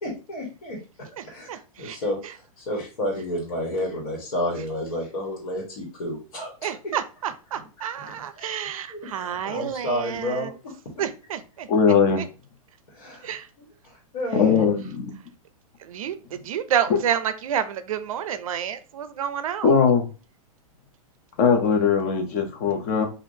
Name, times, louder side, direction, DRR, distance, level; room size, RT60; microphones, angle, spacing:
voice 1, 0.0-6.9 8.0-8.5 8.9-10.7 12.9-14.7, left 1 dB, 70° left, -3 dB, 1.5 m, -31 dB
voice 2, 1.2-2.0 6.6-10.5 11.0-11.7 12.2-12.3 13.2-13.5 15.8-19.7, right 9 dB, 65° right, 11 dB, 0.4 m, -29 dB
voice 3, 11.7-12.2 14.3-15.2 19.6-20.0 21.4-23.1, left 6 dB, 25° left, 5 dB, 0.5 m, -20 dB
3.4 x 2.5 x 2.7 m, 0.33 s
supercardioid pair, 170°, 19 cm